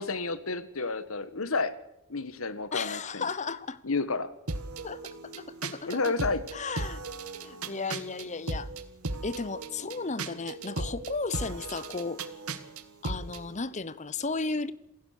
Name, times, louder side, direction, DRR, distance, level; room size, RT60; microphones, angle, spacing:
voice 1, 0.0-1.7 2.1-3.2 3.8-4.3 5.8-6.4, left 3 dB, 70° left, 1.5 m, -30 dB
voice 2, 2.7-3.8 4.8-6.1 6.5-7.0 7.4-8.7 9.2-12.2 13.0-14.7, left 4 dB, 35° left, 1.0 m, -34 dB
sound 1, 4.5-13.4, right 3 dB, 85° right, 1.7 m, -37 dB
27.5 x 16.0 x 6.6 m
head